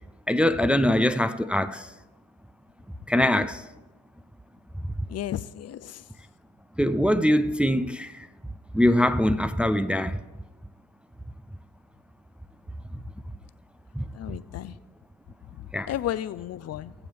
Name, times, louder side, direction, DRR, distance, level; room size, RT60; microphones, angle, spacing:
voice 1, 0.3-1.8 3.1-3.6 6.8-8.1 8.7-10.2 14.0-14.1 15.7-15.9, left 1 dB, 5° right, 0.4 m, -22 dB
voice 2, 5.1-6.0 14.1-14.8 15.9-16.9, left 12 dB, 55° left, 0.5 m, -33 dB
21.0 x 7.3 x 3.4 m
cardioid pair, 90°, 30 cm